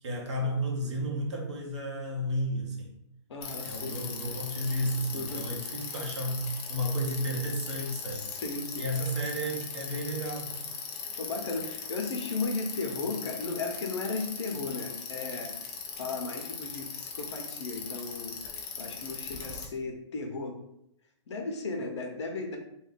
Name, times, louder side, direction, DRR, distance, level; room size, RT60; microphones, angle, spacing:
voice 1, 0.0-2.9 3.6-8.3 8.8-10.6, equal, 70° right, 0 dB, 1.0 m, -32 dB
voice 2, 3.3-4.0 5.1-5.5 8.1-8.9 11.2-15.7 15.9-18.4 18.8-20.6 21.3-22.6, left 3 dB, 65° left, 2 dB, 0.8 m, -35 dB
Bicycle, 3.4-19.6, left 6 dB, 25° left, 0.5 m, -39 dB
2.6 x 2.3 x 3.5 m, 0.77 s
hypercardioid pair, 140°, 16 cm